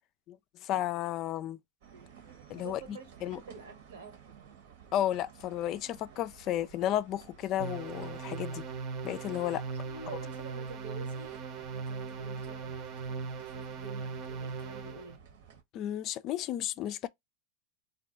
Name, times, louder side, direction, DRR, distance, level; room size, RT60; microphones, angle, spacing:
voice 1, 0.6-1.6 2.5-3.4 4.9-8.6 9.0-9.6 15.7-17.1, left 12 dB, 40° left, 0.3 m, -33 dB
sound 1, 1.8-15.6, right 7 dB, 65° right, 1.1 m, -55 dB
voice 2, 2.6-4.2 9.8-15.2, right 4 dB, 85° right, 1.5 m, -49 dB
sound 2, 7.6-15.2, right 5 dB, 45° right, 0.8 m, -39 dB
2.5 x 2.3 x 3.8 m
hypercardioid pair, 110°, 0 cm